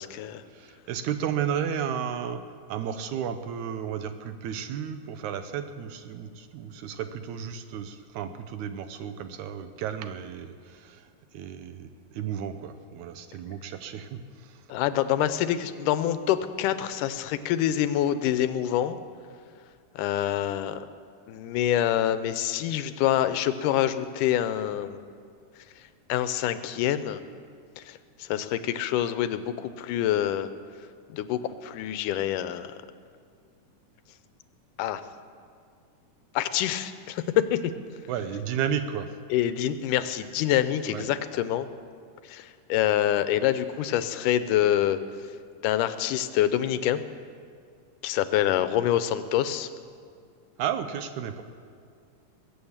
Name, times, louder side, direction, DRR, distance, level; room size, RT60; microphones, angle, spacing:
voice 1, 0.0-0.4 14.7-19.0 20.0-20.8 21.3-25.0 26.1-27.2 27.8-30.5 31.1-32.8 34.8-35.0 36.3-37.7 39.3-41.7 42.2-45.0 45.6-47.0 48.0-49.7, left 11 dB, 85° left, 12 dB, 2.2 m, -26 dB
voice 2, 0.5-2.4 2.7-11.0 11.3-14.5 38.1-39.1 40.9-41.1 50.6-51.4, right 8 dB, 75° right, 9 dB, 2.0 m, -33 dB
21.5 x 8.3 x 7.3 m, 2.2 s
omnidirectional pair, 3.7 m